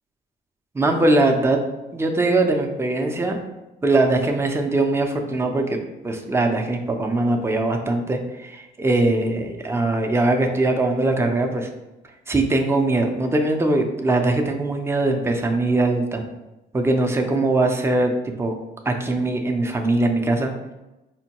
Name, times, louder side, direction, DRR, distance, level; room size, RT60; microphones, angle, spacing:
voice 1, 0.7-1.6 1.9-3.4 3.8-11.7 12.3-16.2 16.7-18.1 18.4-18.5 18.9-20.5, right 2 dB, 15° right, 3 dB, 0.5 m, -21 dB
4.2 x 2.2 x 2.8 m, 0.99 s
cardioid pair, 90°, 20 cm